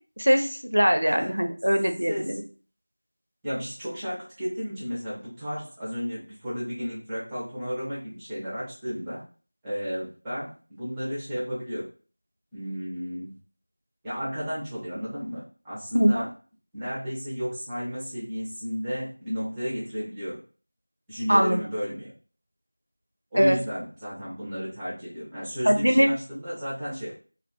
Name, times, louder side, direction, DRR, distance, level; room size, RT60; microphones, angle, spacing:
voice 1, 0.2-2.3 15.9-16.3 21.3-21.6 23.3-23.6 25.7-26.1, equal, 65° right, 5 dB, 0.4 m, -21 dB
voice 2, 1.0-1.4 2.1-2.4 3.4-9.2 9.6-11.9 12.5-13.4 14.0-16.3 16.7-20.4 21.1-22.1 23.3-27.1, equal, 5° right, -10 dB, 0.4 m, -33 dB
2.2 x 2.2 x 2.6 m, 0.39 s
figure-of-eight pair, 175°, 0 cm